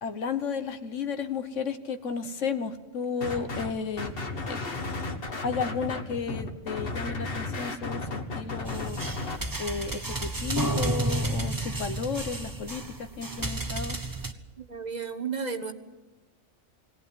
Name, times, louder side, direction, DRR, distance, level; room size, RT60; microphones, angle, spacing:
voice 1, 0.0-4.1 4.5-4.6 5.4-9.0 9.6-14.0, left 5 dB, 85° left, 10 dB, 1.5 m, -33 dB
sound 1, 3.2-3.7 4.0-9.4, left 3 dB, 50° left, 1.8 m, -34 dB
sound 2, 8.7-14.3, right 2 dB, 20° right, 1.0 m, -31 dB
voice 2, 14.6-15.7, right 5 dB, 35° right, 6 dB, 1.3 m, -33 dB
21.5 x 17.5 x 9.4 m, 1.2 s
omnidirectional pair, 1.2 m